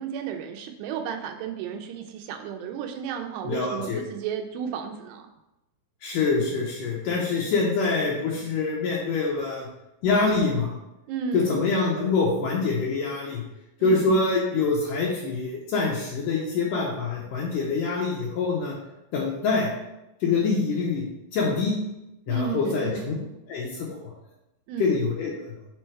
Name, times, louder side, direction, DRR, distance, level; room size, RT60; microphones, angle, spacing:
voice 1, 0.0-5.3 11.1-11.6 13.8-14.1 22.3-23.3 24.7-25.0, right 8 dB, 80° right, 5 dB, 2.6 m, -33 dB
voice 2, 3.4-4.0 6.0-9.7 10.0-10.7 11.3-13.4 13.8-18.7 19.1-19.7 20.2-21.0 21.3-21.8 22.3-23.1 23.5-23.9 24.8-25.3, left 4 dB, 85° left, -3 dB, 1.8 m, -25 dB
6.3 x 4.3 x 4.6 m, 0.92 s
omnidirectional pair, 5.2 m